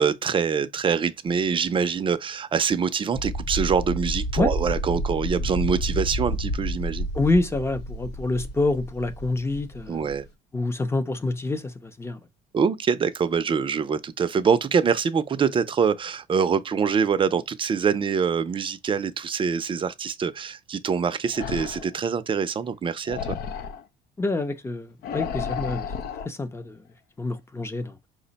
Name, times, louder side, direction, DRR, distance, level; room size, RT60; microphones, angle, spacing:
voice 1, 0.0-7.1 9.9-10.2 12.5-23.2, right 6 dB, 30° right, 0.5 m, -24 dB
sound 1, 3.1-10.3, equal, 90° left, 1.1 m, -30 dB
voice 2, 7.1-10.0 10.5-12.2 24.2-25.9 26.2-26.8 27.2-28.0, left 2 dB, 15° left, 0.6 m, -27 dB
sound 2, 21.3-22.0 23.1-23.8 25.0-26.3, left 7 dB, 70° left, 0.6 m, -32 dB
4.9 x 2.1 x 3.9 m
cardioid pair, 110°, 17 cm